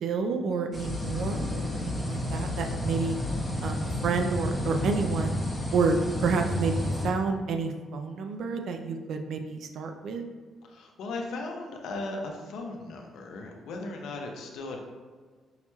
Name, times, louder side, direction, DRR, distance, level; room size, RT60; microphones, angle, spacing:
voice 1, 0.0-3.2 3.6-5.4 5.7-10.2, right 4 dB, 70° right, 5 dB, 0.4 m, -29 dB
sound 1, 0.7-7.1, left 1 dB, 10° left, 0.8 m, -31 dB
voice 2, 10.7-14.8, left 2 dB, 80° left, 2 dB, 0.6 m, -37 dB
5.5 x 3.0 x 2.3 m, 1.5 s
cardioid pair, 90°, 0 cm